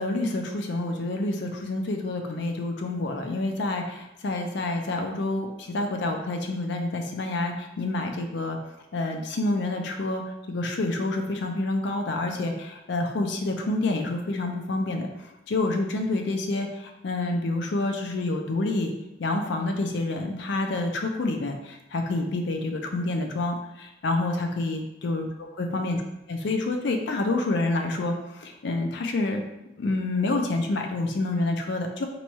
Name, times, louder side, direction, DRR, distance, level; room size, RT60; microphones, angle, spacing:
voice 1, 0.0-8.6 8.9-18.9 19.2-25.3 25.6-26.0 26.3-29.4 29.8-32.1, left 2 dB, 65° left, 3 dB, 0.4 m, -28 dB
3.0 x 2.3 x 4.0 m, 0.91 s
head